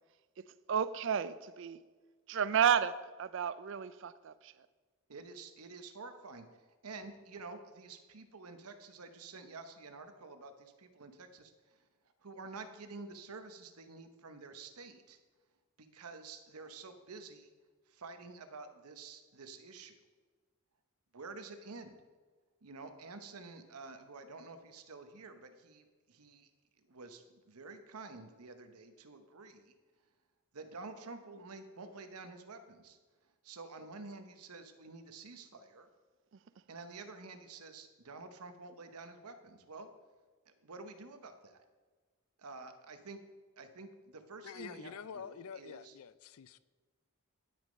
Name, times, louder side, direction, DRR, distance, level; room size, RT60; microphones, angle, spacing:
voice 1, 0.7-1.8 2.3-4.5, right 8 dB, 55° right, 0.4 m, -32 dB
voice 2, 5.1-6.5 6.8-11.9 12.2-15.2 15.8-17.5 17.9-20.0 21.1-22.0 22.6-26.5 26.9-29.7 30.5-33.0 33.4-35.9 36.7-39.9 40.5-41.6 42.4-43.2 43.6-46.0, right 3 dB, 90° right, 0.9 m, -49 dB
voice 3, 44.4-46.6, left 7 dB, 75° left, 0.4 m, -47 dB
10.5 x 6.3 x 5.2 m
head